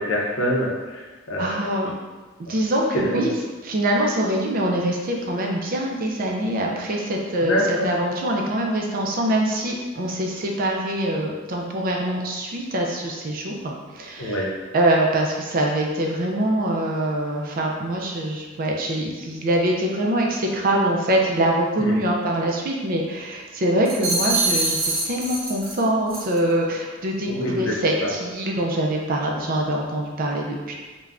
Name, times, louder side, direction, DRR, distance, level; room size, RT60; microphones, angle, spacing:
voice 1, 0.0-1.7 2.5-2.6 2.9-3.2 7.5-7.9 14.2-14.5 21.8-22.0 27.3-27.7 28.0-28.1, equal, 70° left, -2 dB, 0.6 m, -25 dB
voice 2, 1.4-1.9 2.5-3.3 3.6-14.4 14.7-24.8 25.0-30.7, right 1 dB, 45° right, 0 dB, 0.4 m, -24 dB
sound 1, 23.9-25.8 26.1-26.4, right 2 dB, 75° right, 0.8 m, -24 dB
3.3 x 2.2 x 2.4 m, 1.3 s
head